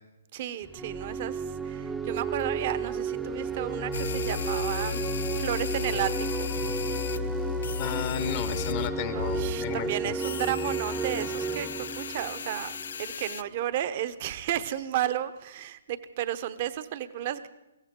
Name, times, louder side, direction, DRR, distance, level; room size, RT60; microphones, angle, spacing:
voice 1, 0.3-5.1 5.4-6.5 9.1-17.5, right 11 dB, 40° right, 13 dB, 1.0 m, -33 dB
sound 1, 0.6-13.3, right 4 dB, 5° right, 0.7 m, -33 dB
sound 2, 3.9-8.9 9.2-9.5 10.2-13.4, left 7 dB, 65° left, 0.5 m, -34 dB
voice 2, 7.8-10.1, left 10 dB, 40° left, 11 dB, 0.8 m, -33 dB
23.0 x 16.0 x 3.8 m, 0.98 s
hypercardioid pair, 140°, 0 cm